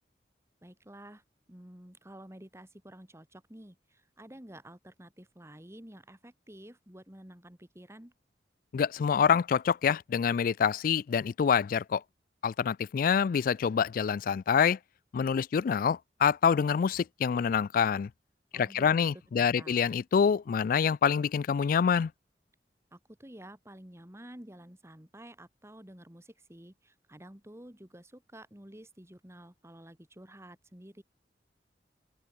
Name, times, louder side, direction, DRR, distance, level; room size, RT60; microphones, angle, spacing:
voice 1, 0.6-8.1 18.5-19.1 19.4-19.8 22.9-31.0, right 1 dB, 15° right, 2.2 m, -51 dB
voice 2, 8.7-12.0 12.4-14.8 15.1-18.1 18.5-22.1, left 7 dB, 50° left, 0.3 m, -26 dB
open air
head